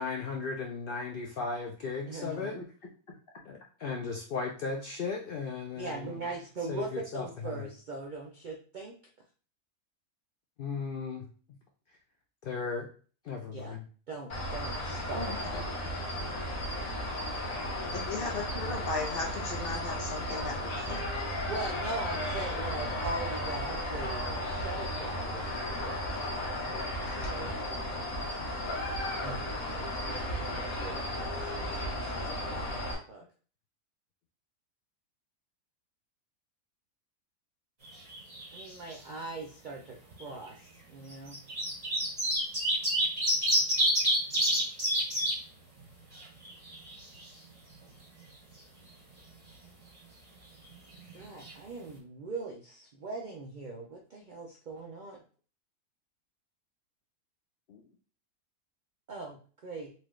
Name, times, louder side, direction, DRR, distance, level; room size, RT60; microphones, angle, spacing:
voice 1, 0.0-2.6 3.5-6.2 6.7-7.7 10.6-11.3 12.4-12.9 13.2-13.8 17.9-18.1 57.7-57.8, left 4 dB, 70° left, 2 dB, 0.5 m, -36 dB
voice 2, 2.1-2.6 5.8-8.9 13.5-13.8 14.1-15.3 21.5-25.5 25.8-26.0 27.2-27.6 29.2-29.5 29.8-31.7 31.9-33.2 38.5-41.4 51.1-55.2 59.1-59.9, right 3 dB, 65° right, 1 dB, 0.4 m, -41 dB
sound 1, 14.3-32.9, left 1 dB, 90° left, 1.8 m, -34 dB
voice 3, 15.2-15.6 17.9-21.0, left 3 dB, 45° left, 0 dB, 0.9 m, -37 dB
sound 2, 37.9-38.6 38.9-39.0 40.1-40.2 41.1-45.3 45.8-45.9 46.2-47.2 51.1-51.2 51.4-51.5, right 1 dB, 30° right, 1.5 m, -28 dB
4.3 x 2.3 x 3.1 m, 0.40 s
omnidirectional pair, 1.5 m